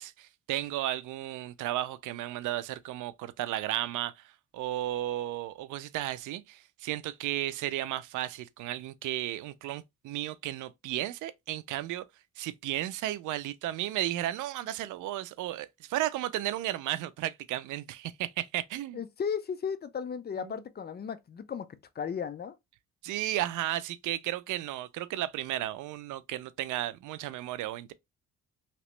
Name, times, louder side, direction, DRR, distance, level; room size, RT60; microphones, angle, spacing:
voice 1, 0.0-4.1 4.5-12.0 12.4-19.0 20.4-20.5 23.0-27.9, right 14 dB, 80° right, 0.5 m, -34 dB
voice 2, 18.9-21.7 22.0-22.6, left 7 dB, 35° left, 0.4 m, -35 dB
3.0 x 2.9 x 3.0 m
cardioid pair, 90°, 30 cm